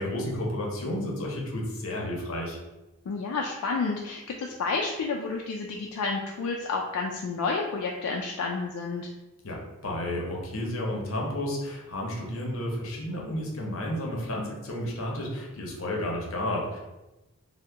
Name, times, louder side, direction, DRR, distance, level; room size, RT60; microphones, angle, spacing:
voice 1, 0.0-2.6 9.4-16.8, left 1 dB, 70° left, -1 dB, 0.7 m, -32 dB
voice 2, 3.1-9.1, left 4 dB, 90° left, 0 dB, 0.3 m, -30 dB
2.8 x 2.0 x 3.3 m, 1.0 s
head